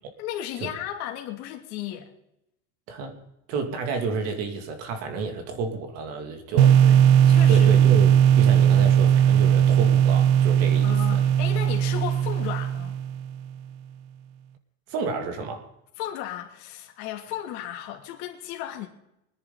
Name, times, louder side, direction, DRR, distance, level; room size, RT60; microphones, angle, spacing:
voice 1, 0.2-2.1 6.5-7.8 8.7-8.8 10.8-12.9 16.0-18.9, left 12 dB, 55° left, 2.6 m, -35 dB
voice 2, 2.9-6.7 7.5-11.2 14.9-15.7, right 4 dB, 50° right, 2.5 m, -31 dB
sound 1, 6.6-13.4, right 9 dB, 80° right, 1.0 m, -18 dB
24.5 x 10.0 x 4.0 m
cardioid pair, 165°, 32 cm